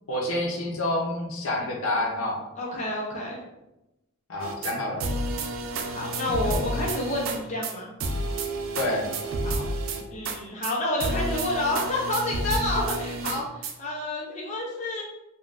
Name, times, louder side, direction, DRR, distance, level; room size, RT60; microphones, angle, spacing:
voice 1, 0.1-2.4 4.3-5.1 8.7-9.0, left 1 dB, 75° left, -1 dB, 0.7 m, -28 dB
voice 2, 2.6-3.4 5.9-7.9 9.4-9.6 10.1-15.0, left 1 dB, 35° left, -4 dB, 0.5 m, -29 dB
sound 1, 4.4-4.7 5.0-7.4 7.6-7.7 8.0-10.4 10.6-10.7 11.0-13.7, right 2 dB, 65° right, 0.4 m, -30 dB
3.7 x 2.2 x 2.4 m, 0.94 s
head